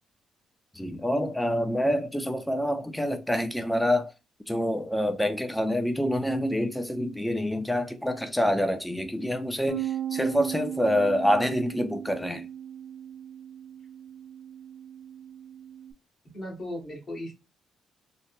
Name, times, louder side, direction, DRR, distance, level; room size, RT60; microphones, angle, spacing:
voice 1, 0.8-4.1 4.5-12.5, equal, 5° left, 0.5 m, -27 dB
Bass guitar, 9.7-15.9, right 9 dB, 65° right, 0.3 m, -36 dB
voice 2, 16.3-17.3, left 1 dB, 55° left, 1.8 m, -37 dB
3.9 x 2.2 x 2.4 m
cardioid pair, 90°, 0 cm